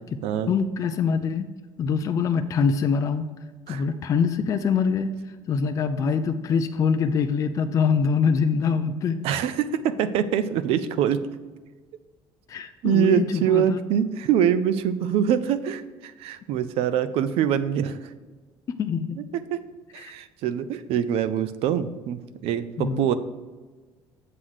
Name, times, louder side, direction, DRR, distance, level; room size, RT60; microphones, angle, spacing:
voice 1, 0.5-1.5 1.8-3.2 3.7-5.1 5.5-9.2 12.5-13.8 18.8-19.2 20.0-20.1 22.8-23.1, left 6 dB, 30° left, 7 dB, 0.4 m, -24 dB
voice 2, 9.2-11.2 12.8-18.0 19.5-19.6 19.9-23.1, right 9 dB, 70° right, 13 dB, 0.5 m, -24 dB
7.5 x 3.9 x 6.2 m, 1.4 s
cardioid pair, 150°, 10 cm